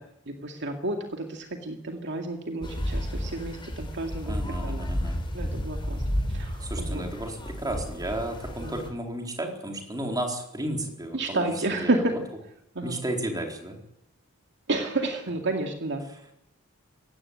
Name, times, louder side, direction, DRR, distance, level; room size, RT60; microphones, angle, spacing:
voice 1, 0.3-4.8 5.3-6.0 6.3-7.1 8.6-8.8 11.1-12.1 12.7-13.0 14.7-16.1, right 2 dB, 55° right, 3 dB, 2.2 m, -30 dB
sound 1, 2.6-8.9, equal, 20° left, 4.1 m, -32 dB
voice 2, 4.3-5.2 6.6-12.0 12.8-13.8, right 1 dB, 15° right, 2 dB, 4.1 m, -33 dB
17.5 x 15.5 x 9.7 m, 0.78 s
head